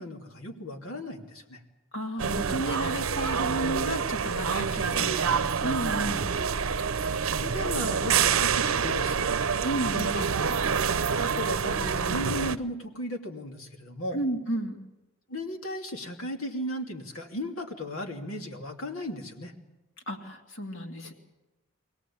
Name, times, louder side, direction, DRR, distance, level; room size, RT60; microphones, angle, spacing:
voice 1, 0.0-1.6 4.9-5.1 6.2-6.6 7.1-9.3 10.8-14.2 15.3-19.5, left 1 dB, 85° left, 3 dB, 2.8 m, -36 dB
voice 2, 1.9-6.3 9.6-10.4 14.1-14.8 20.1-21.1, right 1 dB, 60° left, 3 dB, 2.7 m, -33 dB
sound 1, 2.2-12.6, right 6 dB, 75° right, 0.7 m, -27 dB
24.5 x 17.5 x 8.6 m, 1.1 s
head